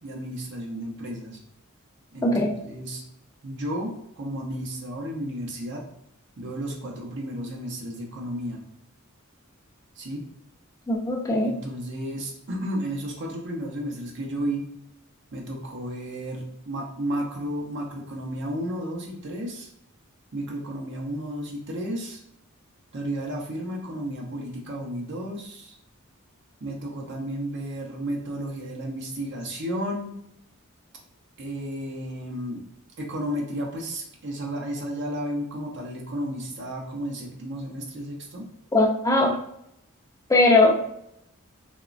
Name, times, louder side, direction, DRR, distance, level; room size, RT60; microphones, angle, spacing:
voice 1, 0.0-1.4 2.1-3.0 3.4-5.8 6.4-8.6 10.0-10.2 11.4-14.6 15.3-19.7 20.3-22.2 22.9-25.8 26.6-30.1 31.4-32.6 33.0-38.5, equal, 55° right, -1 dB, 0.6 m, -33 dB
voice 2, 10.9-11.5 38.7-39.4 40.3-40.7, left 2 dB, 15° left, 0 dB, 0.4 m, -19 dB
2.9 x 2.2 x 2.4 m, 0.77 s
head